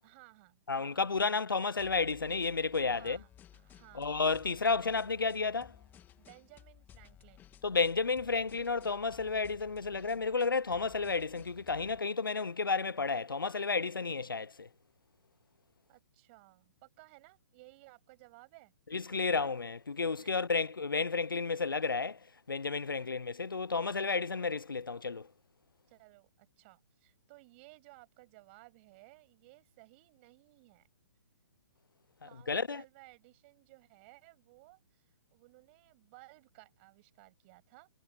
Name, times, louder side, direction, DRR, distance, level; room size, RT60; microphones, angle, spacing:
voice 1, 0.0-1.2 2.9-4.3 6.2-7.5 15.9-18.7 20.2-20.6 22.9-23.2 25.9-30.9 32.2-37.9, right 25 dB, 35° right, 7.8 m, -59 dB
voice 2, 0.7-3.2 4.0-5.7 7.6-14.7 18.9-22.2 22.5-25.3 32.5-32.8, left 4 dB, 85° left, 0.6 m, -32 dB
sound 1, 1.8-12.0, left 10 dB, 15° left, 2.2 m, -58 dB
figure-of-eight pair, 130°, 11 cm